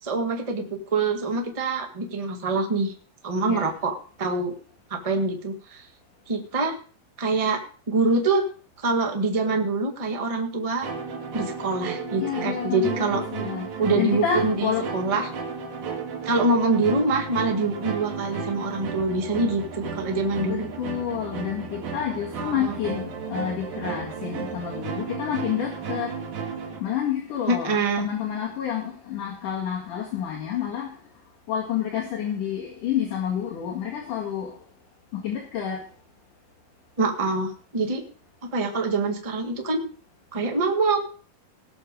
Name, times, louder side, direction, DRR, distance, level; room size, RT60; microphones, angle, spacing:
voice 1, 0.0-2.9 3.2-4.5 4.9-5.8 6.3-6.7 7.2-8.4 8.8-10.9 11.3-13.2 13.8-15.3 16.2-20.7 22.4-22.7 27.5-28.1 37.0-38.0 38.5-39.8 40.3-41.0, right 3 dB, 35° right, 0.5 m, -25 dB
sound 1, 10.8-26.8, right 5 dB, 60° right, 3.2 m, -34 dB
voice 2, 12.2-14.8 20.4-26.3 26.8-31.0 31.5-34.6 35.1-35.8, left 9 dB, 65° left, 3.4 m, -29 dB
18.5 x 6.8 x 5.3 m
omnidirectional pair, 4.1 m